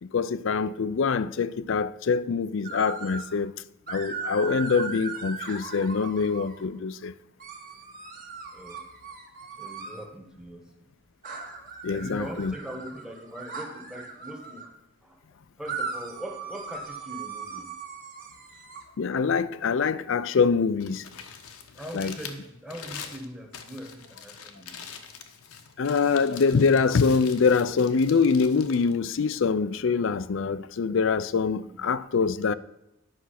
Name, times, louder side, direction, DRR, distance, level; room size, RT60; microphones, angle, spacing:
voice 1, 0.0-3.5 3.9-7.1 11.8-12.5 19.0-21.0 21.9-22.1 25.8-32.5, left 5 dB, 60° left, 0.4 m, -24 dB
sound 1, 2.6-3.3 3.9-6.6 7.4-10.0 11.2-14.7 15.6-18.8, right 4 dB, 40° right, 1.5 m, -38 dB
voice 2, 9.6-10.6 11.9-14.6 15.6-17.7 21.8-24.9 31.6-31.9, equal, 5° right, 1.2 m, -41 dB
Crumpling crinkling, 20.8-29.8, left 7 dB, 90° left, 1.1 m, -44 dB
10.5 x 6.1 x 5.8 m
head